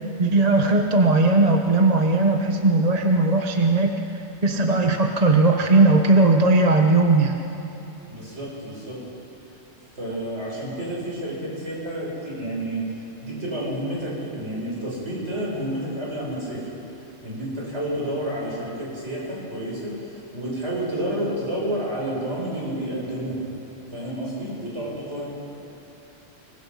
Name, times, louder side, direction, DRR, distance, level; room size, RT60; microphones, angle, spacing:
voice 1, 0.2-3.9 4.4-7.3, right 2 dB, 35° right, 3 dB, 1.2 m, -18 dB
voice 2, 8.1-9.0 10.0-16.7 17.2-23.4 23.9-25.2, right 1 dB, 65° right, -5 dB, 7.2 m, -30 dB
26.0 x 22.0 x 5.7 m, 2.8 s
omnidirectional pair, 1.2 m